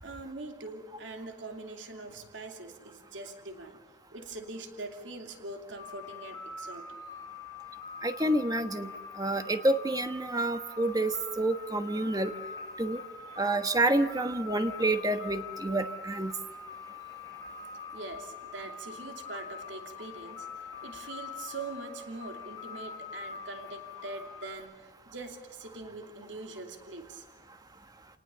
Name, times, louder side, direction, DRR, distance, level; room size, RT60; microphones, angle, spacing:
voice 1, 0.0-3.8 4.1-6.8 13.3-13.4 17.9-27.3, right 2 dB, 85° right, 4 dB, 2.8 m, -43 dB
sound 1, 5.8-24.6, left 4 dB, 20° left, 4.4 m, -44 dB
voice 2, 8.0-8.9 9.2-12.3 12.8-13.0 13.4-16.3, right 2 dB, 20° right, 9 dB, 1.2 m, -28 dB
29.5 x 19.5 x 6.9 m, 1.2 s
head